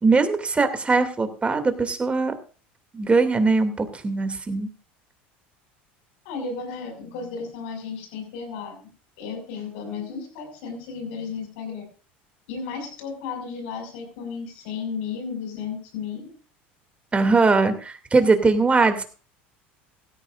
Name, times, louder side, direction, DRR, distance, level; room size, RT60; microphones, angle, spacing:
voice 1, 0.0-2.3 2.9-4.7 17.1-19.0, right 3 dB, 20° right, 8 dB, 2.6 m, -21 dB
voice 2, 6.2-8.8 9.2-11.8 12.5-16.3, left 5 dB, 75° left, 5 dB, 5.9 m, -34 dB
16.5 x 14.0 x 2.5 m, 0.37 s
hypercardioid pair, 85°, 6 cm